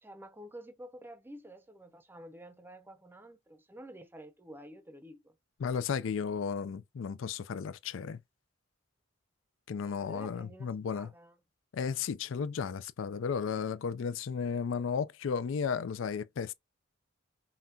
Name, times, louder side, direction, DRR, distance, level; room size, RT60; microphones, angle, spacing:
voice 1, 0.0-5.3 9.8-11.4, right 1 dB, 10° right, 0.6 m, -50 dB
voice 2, 5.6-8.2 9.7-11.1 11.7-16.5, left 6 dB, 70° left, 0.4 m, -34 dB
5.6 x 2.3 x 2.7 m
head